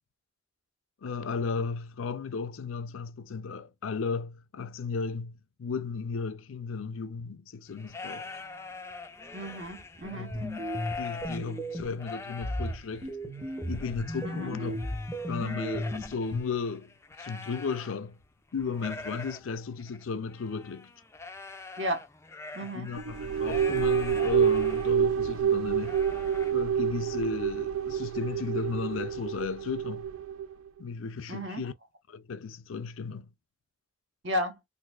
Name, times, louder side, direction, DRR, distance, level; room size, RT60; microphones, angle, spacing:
voice 1, 1.0-8.3 10.1-10.6 11.0-13.2 13.6-14.8 15.3-16.9 17.2-18.2 18.5-20.9 22.6-26.0 26.5-30.1 30.8-31.7 32.1-33.3, left 5 dB, 85° left, 0.5 m, -35 dB
sound 1, 7.7-18.2 18.5-24.9 25.3-25.4 25.8-26.5, left 3 dB, 15° left, 0.3 m, -43 dB
voice 2, 9.3-10.3 14.2-14.5 21.8-22.0 22.5-22.9 31.3-31.6 34.2-34.6, equal, 60° right, 1.0 m, -33 dB
sound 2, 10.0-12.0 12.4-16.4, equal, 15° right, 0.8 m, -35 dB
sound 3, 23.0-30.5, right 8 dB, 85° right, 0.4 m, -28 dB
4.0 x 2.6 x 2.3 m
head